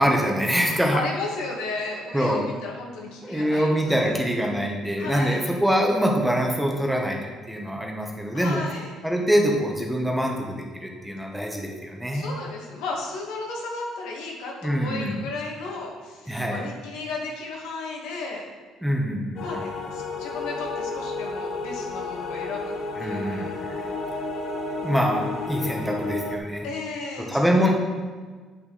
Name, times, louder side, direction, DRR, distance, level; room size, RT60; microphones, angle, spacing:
voice 1, 0.0-1.0 2.1-2.4 3.2-8.6 9.0-12.3 14.6-15.2 16.3-16.6 18.8-19.6 23.0-23.8 24.8-26.7 27.2-27.7, equal, 5° right, 0 dB, 1.2 m, -24 dB
voice 2, 0.9-4.1 5.0-5.5 8.3-8.9 12.1-18.4 19.4-22.7 23.0-23.5 26.6-27.7, left 3 dB, 85° left, -1 dB, 2.1 m, -34 dB
sound 1, 19.4-26.4, left 3 dB, 55° left, 1.0 m, -31 dB
8.8 x 6.1 x 4.2 m, 1.5 s
cardioid pair, 125°, 0 cm